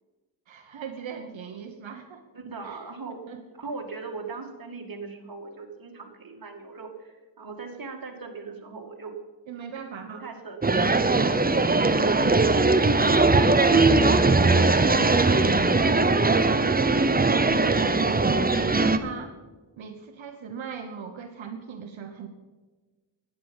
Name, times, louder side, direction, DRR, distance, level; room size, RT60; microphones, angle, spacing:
voice 1, 0.5-2.2 2.6-2.8 3.1-3.4 9.5-10.3 13.4-17.1 17.4-19.4 19.8-22.3, right 6 dB, 85° right, 4 dB, 1.1 m, -39 dB
voice 2, 2.3-3.2 3.5-9.1 9.6-9.7 10.2-10.9, right 4 dB, 50° right, 2 dB, 2.3 m, -39 dB
sound 1, 10.6-19.0, right 3 dB, 20° right, 0.8 m, -20 dB
11.5 x 9.4 x 7.2 m, 1.3 s
wide cardioid pair, 85°, 45 cm